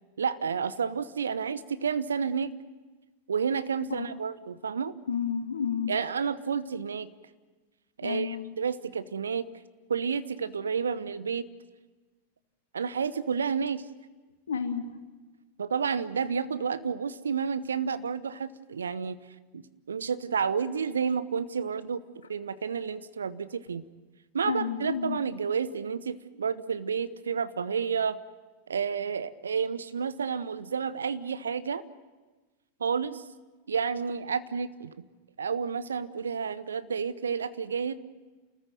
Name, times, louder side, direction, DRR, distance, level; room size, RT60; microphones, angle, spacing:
voice 1, 0.2-2.5 3.3-4.9 5.9-7.1 8.0-9.5 9.9-11.5 12.7-13.8 15.6-19.2 19.5-22.0 22.3-23.8 24.3-28.2 28.7-31.8 32.8-33.2 33.7-34.9 35.4-37.9, right 6 dB, 70° right, 15 dB, 0.9 m, -30 dB
voice 2, 5.1-5.9 8.0-8.4 14.5-15.0 24.5-25.2, left 7 dB, 70° left, 7 dB, 2.1 m, -31 dB
30.0 x 14.5 x 9.3 m, 1.3 s
figure-of-eight pair, 90°, 0 cm